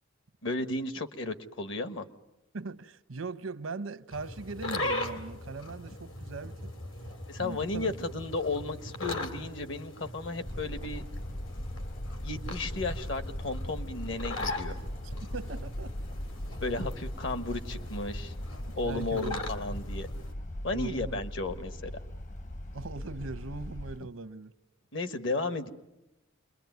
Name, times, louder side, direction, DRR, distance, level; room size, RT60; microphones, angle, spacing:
voice 1, 0.4-2.0 7.3-11.0 12.2-14.8 16.6-18.3 18.7-20.1 20.6-21.9 24.9-25.7, left 2 dB, 65° left, 1.5 m, -34 dB
voice 2, 2.5-6.8 7.4-7.9 15.0-15.9 18.7-19.4 20.7-21.2 22.7-24.5, right 3 dB, 85° right, 0.9 m, -40 dB
sound 1, 4.1-20.3, left 2 dB, 85° left, 3.1 m, -40 dB
sound 2, 10.4-24.0, left 1 dB, 40° left, 0.9 m, -39 dB
28.5 x 22.0 x 9.4 m
head